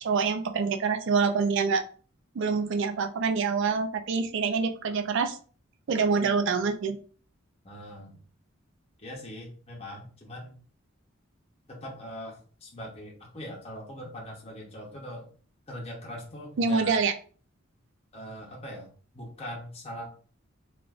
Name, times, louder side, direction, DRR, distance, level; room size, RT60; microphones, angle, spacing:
voice 1, 0.0-1.8 2.3-5.4 5.9-7.0 16.6-17.1, right 5 dB, 60° right, 7 dB, 0.4 m, -26 dB
voice 2, 7.6-8.2 9.0-10.6 11.7-15.3 15.7-17.0 18.1-20.1, equal, 30° left, -2 dB, 0.7 m, -41 dB
3.4 x 2.4 x 2.4 m, 0.41 s
head